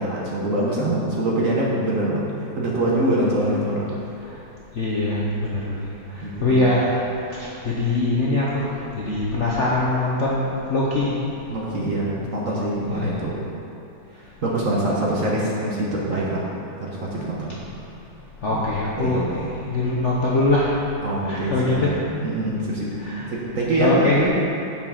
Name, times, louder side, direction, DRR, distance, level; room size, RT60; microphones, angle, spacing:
voice 1, 0.0-2.2 2.6-3.9 6.2-6.7 11.5-13.4 14.4-16.5 16.8-17.6 18.5-18.6 19.0-19.5 21.0-21.8 22.2-22.9 23.3-24.3, right 1 dB, 45° right, -5 dB, 1.3 m, -24 dB
voice 2, 3.3-3.6 4.2-4.4 4.7-11.2 12.9-13.2 15.1-15.3 17.8-17.9 18.4-20.8 21.2-22.0 22.9-23.3 23.8-24.3, left 2 dB, 50° left, -6 dB, 0.8 m, -23 dB
7.2 x 5.7 x 5.7 m, 2.8 s
omnidirectional pair, 2.2 m